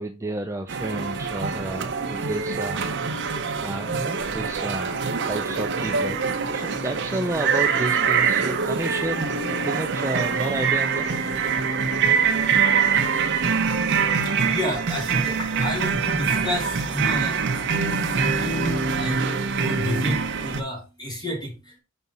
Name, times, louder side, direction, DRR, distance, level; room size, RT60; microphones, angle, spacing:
voice 1, 0.0-2.9 3.6-5.0 5.3-6.2 6.5-11.1, right 2 dB, 15° right, 5 dB, 0.4 m, -31 dB
sound 1, 0.7-20.6, right 5 dB, 55° right, 0.8 m, -24 dB
voice 2, 14.1-21.8, left 1 dB, 20° left, 0 dB, 2.3 m, -31 dB
5.5 x 4.7 x 4.0 m, 0.29 s
head